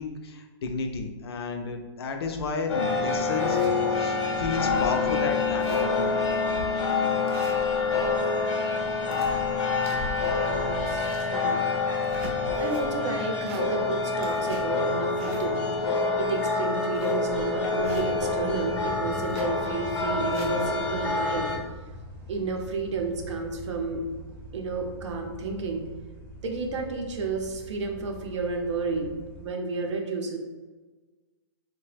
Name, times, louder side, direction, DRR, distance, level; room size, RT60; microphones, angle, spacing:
voice 1, 0.0-6.1, left 4 dB, 60° left, 4 dB, 0.4 m, -32 dB
sound 1, 2.4-2.5 3.0-3.7 4.3-4.4 4.7-4.8 5.1-5.2 5.4-6.0 6.5-6.6 7.2-8.0 8.8-10.3 10.7-11.4 11.9-12.9 13.3-13.9 14.2-18.1 19.2-19.6 20.0-20.5, right 2 dB, 30° right, 0.4 m, -45 dB
sound 2, 2.7-21.6, left 4 dB, 90° left, 0.8 m, -27 dB
voice 2, 10.5-11.7 12.6-21.5 22.3-24.0 24.5-25.8 26.4-30.4, right 3 dB, 85° right, 2 dB, 0.6 m, -31 dB
sound 3, 17.8-29.5, right 1 dB, 45° right, 0.8 m, -43 dB
2.8 x 2.2 x 3.2 m, 1.3 s
hypercardioid pair, 175°, 15 cm